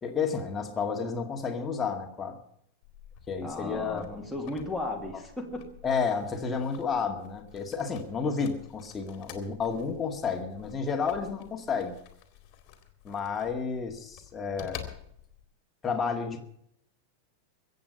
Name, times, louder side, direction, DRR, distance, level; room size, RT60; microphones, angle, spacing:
voice 1, 0.0-2.4 3.3-4.1 5.8-12.0 13.0-14.9 15.8-16.4, left 5 dB, 20° left, 3 dB, 2.0 m, -31 dB
sound 1, 2.8-15.4, left 10 dB, 40° left, 2.2 m, -49 dB
voice 2, 3.4-5.8, left 2 dB, ahead, -1 dB, 2.4 m, -35 dB
22.5 x 8.1 x 5.5 m, 0.71 s
figure-of-eight pair, 90°, 0 cm